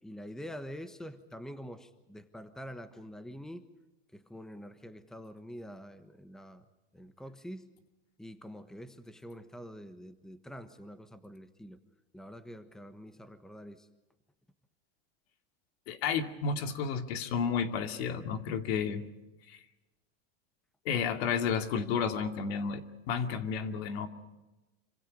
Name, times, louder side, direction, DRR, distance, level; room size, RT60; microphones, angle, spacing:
voice 1, 0.0-3.7 4.1-6.7 6.9-7.7 8.2-11.8 12.1-13.9, equal, ahead, 10 dB, 1.2 m, -46 dB
voice 2, 15.9-19.0 19.5-19.6 20.8-24.1, left 6 dB, 75° left, 6 dB, 2.6 m, -32 dB
27.0 x 25.5 x 5.3 m, 1.0 s
supercardioid pair, 135°, 32 cm